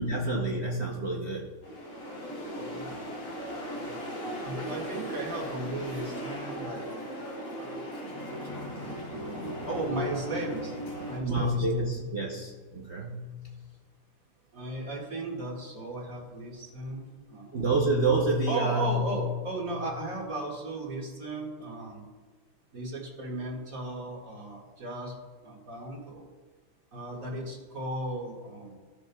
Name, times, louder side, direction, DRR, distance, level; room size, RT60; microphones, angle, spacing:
voice 1, 0.0-1.5 2.8-2.9 11.2-13.4 17.5-19.2, right 2 dB, 85° right, -2 dB, 0.5 m, -28 dB
sound 1, 1.6-11.2, equal, 80° left, 3.4 m, -37 dB
voice 2, 2.5-3.1 3.6-4.1 4.4-6.9 7.6-7.9 8.7-10.7 11.1-11.8 14.5-17.5 18.5-22.1 22.7-25.1 25.4-26.2 26.9-28.7, right 2 dB, 40° right, -3 dB, 2.2 m, -36 dB
15.5 x 6.9 x 2.3 m, 1.5 s
omnidirectional pair, 2.4 m